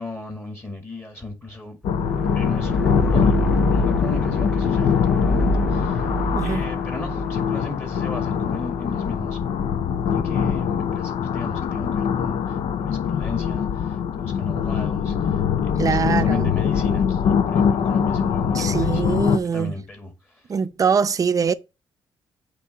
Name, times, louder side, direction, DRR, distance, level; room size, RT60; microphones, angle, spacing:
voice 1, 0.0-1.8 2.3-6.1 6.4-9.4 10.1-20.6, left 3 dB, 25° left, 2.0 m, -36 dB
sound 1, 1.8-19.4, left 7 dB, 80° left, 0.7 m, -23 dB
sound 2, 1.9-10.2, right 2 dB, ahead, 0.6 m, -28 dB
voice 2, 6.3-6.7 15.8-16.5 18.6-19.7 20.5-21.5, right 6 dB, 40° right, 0.6 m, -23 dB
8.3 x 3.1 x 5.6 m
cardioid pair, 110°, 9 cm